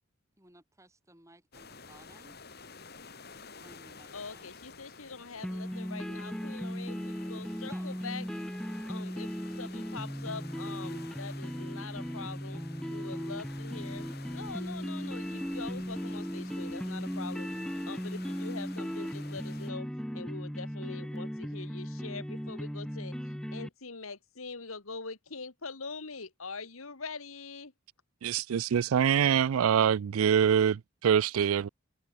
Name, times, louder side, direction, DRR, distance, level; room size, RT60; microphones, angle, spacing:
voice 1, 0.4-2.4 3.4-4.5 7.7-7.9 8.2-8.4, right 1 dB, 15° right, 7.3 m, -58 dB
sound 1, 1.5-19.7, left 4 dB, 45° left, 3.2 m, -51 dB
voice 2, 4.1-8.3 8.9-12.6 12.9-17.5 17.9-19.9 20.1-23.1 23.5-27.7, left 4 dB, 75° left, 1.8 m, -43 dB
sound 2, 5.4-23.7, equal, 5° left, 1.2 m, -37 dB
voice 3, 28.2-31.7, right 8 dB, 80° right, 0.4 m, -25 dB
head